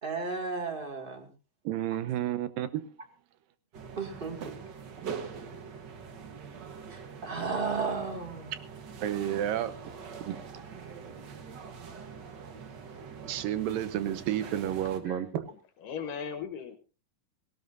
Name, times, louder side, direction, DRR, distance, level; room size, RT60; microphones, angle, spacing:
voice 1, 0.0-1.3 4.0-4.5 6.9-8.5 15.0-15.2, right 4 dB, 20° right, 1.6 m, -34 dB
voice 2, 1.7-2.8 9.0-9.7 10.3-10.4 13.1-15.5, right 11 dB, 85° right, 2.7 m, -31 dB
sound 1, 3.7-15.0, right 6 dB, 55° right, 1.2 m, -44 dB
voice 3, 15.5-16.8, left 7 dB, 80° left, 2.7 m, -38 dB
18.5 x 17.5 x 2.6 m
omnidirectional pair, 3.8 m